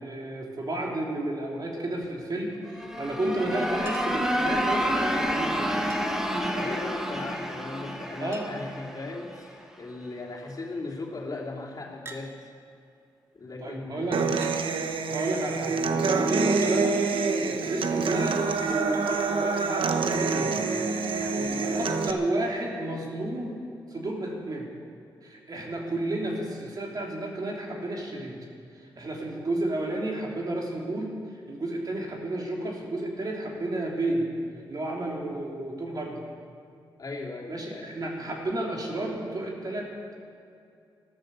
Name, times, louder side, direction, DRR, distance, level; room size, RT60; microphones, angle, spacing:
voice 1, 0.0-5.7 8.2-8.5 13.6-14.2 15.1-17.0 17.4-18.4 18.6-20.6 21.6-23.6 23.9-24.7 25.2-28.4 28.7-31.2 31.5-34.3 34.7-36.2 37.5-39.9, right 1 dB, 50° right, -1 dB, 3.3 m, -31 dB
sound 1, 2.7-9.5, equal, 5° right, 1.7 m, -29 dB
Chink clink, 3.9-4.3 5.9-6.3 7.7-7.8 8.0-8.1 8.3-8.8 9.5-9.9 12.0-12.3 13.4-13.5 14.4-14.6 16.6-16.8 18.9-19.1 20.5-20.6, right 2 dB, 30° right, 1.9 m, -45 dB
voice 2, 6.5-12.5 13.3-14.3 21.1-22.3 35.1-35.4 37.0-37.9, left 2 dB, 45° left, -3 dB, 3.2 m, -38 dB
Human voice / Acoustic guitar, 14.1-22.1, right 4 dB, 80° right, 1.1 m, -26 dB
15.0 x 13.0 x 6.9 m, 2.5 s
cardioid pair, 70°, 9 cm